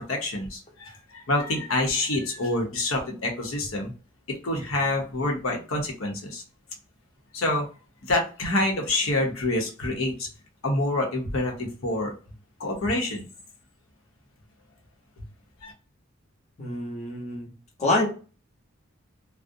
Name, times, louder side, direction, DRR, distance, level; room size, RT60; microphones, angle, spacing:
voice 1, 0.1-3.9 4.4-6.4 7.3-7.6 8.1-10.3 10.6-12.1 12.6-13.3 15.6-15.7, left 2 dB, 85° left, 1 dB, 0.7 m, -27 dB
voice 2, 16.6-17.5 17.8-18.1, left 2 dB, 35° left, -1 dB, 0.7 m, -26 dB
2.4 x 2.0 x 2.6 m, 0.36 s
head